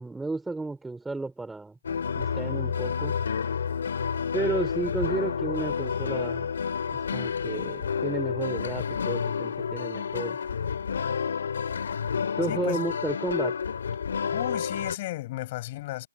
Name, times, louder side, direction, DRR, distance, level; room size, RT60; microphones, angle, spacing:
voice 1, 0.0-1.8 2.2-3.2 4.3-6.5 7.1-10.4 12.4-13.6, right 3 dB, 5° right, 3.7 m, -32 dB
sound 1, 1.8-15.0, left 6 dB, 60° left, 3.1 m, -30 dB
voice 2, 12.5-12.8 14.3-16.1, left 17 dB, 30° left, 6.6 m, -34 dB
hypercardioid pair, 150°, 0 cm